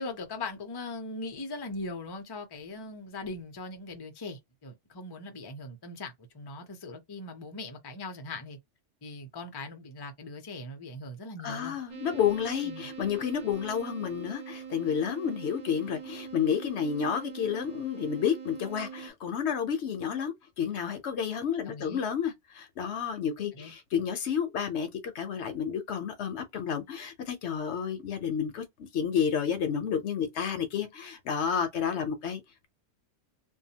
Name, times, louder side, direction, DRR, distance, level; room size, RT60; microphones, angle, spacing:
voice 1, 0.0-8.6 9.0-11.8 12.6-12.9 21.6-22.0 23.5-23.7, left 2 dB, 30° left, 0.5 m, -40 dB
voice 2, 11.4-32.7, left 7 dB, 65° left, 0.9 m, -31 dB
sound 1, 11.9-19.1, right 7 dB, 45° right, 0.7 m, -43 dB
2.7 x 2.2 x 2.7 m
omnidirectional pair, 1.3 m